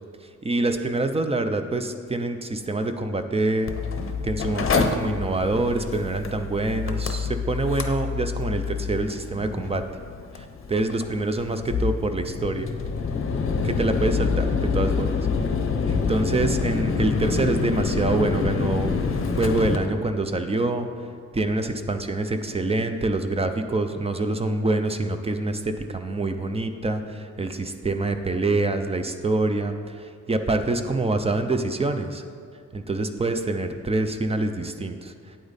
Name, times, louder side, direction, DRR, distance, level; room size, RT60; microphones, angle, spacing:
voice 1, 0.4-3.8 4.2-9.8 10.3-12.7 13.6-15.1 15.9-18.9 19.4-20.9 21.3-32.2 32.7-35.1, right 2 dB, 20° right, 8 dB, 0.4 m, -26 dB
Mechanical fan, 3.7-19.8, left 5 dB, 45° left, 0.7 m, -27 dB
9.0 x 8.3 x 4.1 m, 2.3 s
wide cardioid pair, 170°, 30 cm